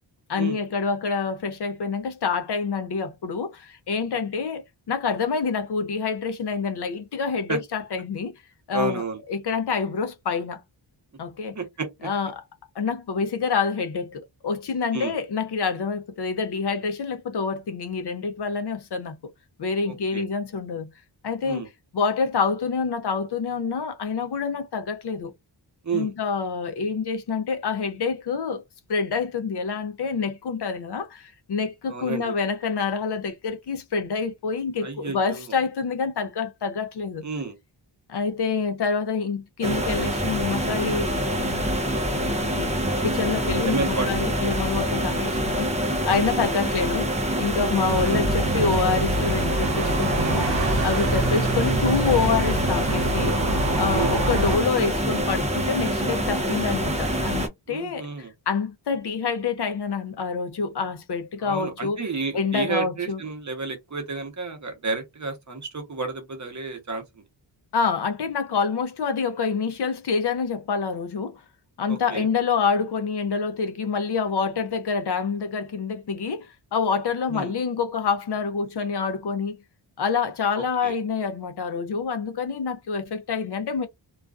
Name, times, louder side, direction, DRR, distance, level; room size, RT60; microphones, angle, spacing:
voice 1, 0.3-8.3 8.7-9.0 9.3-10.6 11.2-11.6 12.0-12.4 12.8-19.2 19.6-20.9 21.2-21.7 21.9-25.3 25.9-28.6 28.9-37.3 38.1-41.7 42.1-47.1 47.4-50.5 50.8-53.4 53.7-58.1 58.5-62.0 62.3-63.2 67.7-71.4 71.8-79.6 80.0-83.9, left 5 dB, 60° left, 0.5 m, -27 dB
voice 2, 8.7-9.2 11.5-12.1 14.9-15.1 19.9-20.2 21.4-21.7 25.8-26.1 31.9-32.3 34.8-35.5 37.2-37.5 43.6-44.1 46.3-46.4 48.1-48.2 53.9-54.2 57.7-58.3 61.4-67.0 71.9-72.3 77.3-77.5 80.6-80.9, right 4 dB, 40° right, 0.8 m, -31 dB
sound 1, 39.6-57.5, equal, 15° right, 0.4 m, -26 dB
sound 2, 47.9-54.6, right 2 dB, 70° right, 0.8 m, -26 dB
2.4 x 2.2 x 2.3 m
wide cardioid pair, 140°, 46 cm